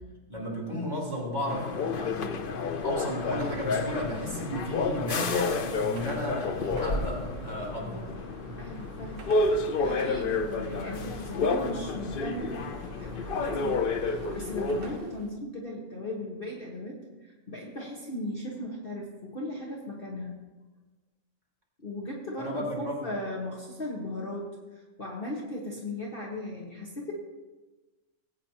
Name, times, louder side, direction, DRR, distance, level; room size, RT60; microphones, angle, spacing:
voice 1, 0.3-2.5 2.8-8.1 22.4-23.0, equal, 20° right, -4 dB, 3.0 m, -34 dB
sound 1, 1.5-15.0, left 3 dB, 55° left, 0.6 m, -30 dB
Car passing by / Traffic noise roadway noise / Engine, 2.7-15.4, right 3 dB, 50° right, 0.8 m, -45 dB
voice 2, 8.6-20.4 21.8-27.1, left 1 dB, 40° left, -3 dB, 1.6 m, -38 dB
18.5 x 8.6 x 2.9 m, 1.2 s
omnidirectional pair, 1.6 m